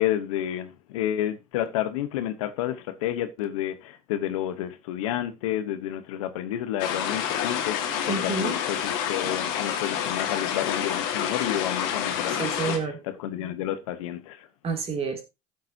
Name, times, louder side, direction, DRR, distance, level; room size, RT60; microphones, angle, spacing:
voice 1, 0.0-14.5, left 11 dB, 90° left, 1.2 m, -30 dB
sound 1, 6.8-12.8, left 9 dB, 75° left, 1.9 m, -28 dB
voice 2, 8.1-8.6 12.3-13.0 14.6-15.2, right 4 dB, 35° right, 2.8 m, -29 dB
13.5 x 7.4 x 2.8 m
supercardioid pair, 95°, 17 cm